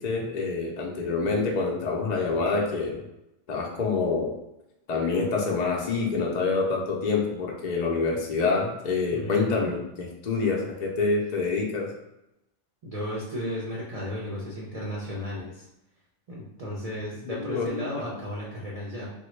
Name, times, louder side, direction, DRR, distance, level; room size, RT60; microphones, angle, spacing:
voice 1, 0.0-3.0 3.5-4.3 4.9-11.9 17.3-17.9, left 4 dB, 55° left, -1 dB, 0.4 m, -26 dB
voice 2, 9.1-9.7 12.8-15.7 16.3-19.1, equal, 45° right, -6 dB, 0.5 m, -34 dB
3.1 x 2.2 x 3.1 m, 0.89 s
omnidirectional pair, 1.3 m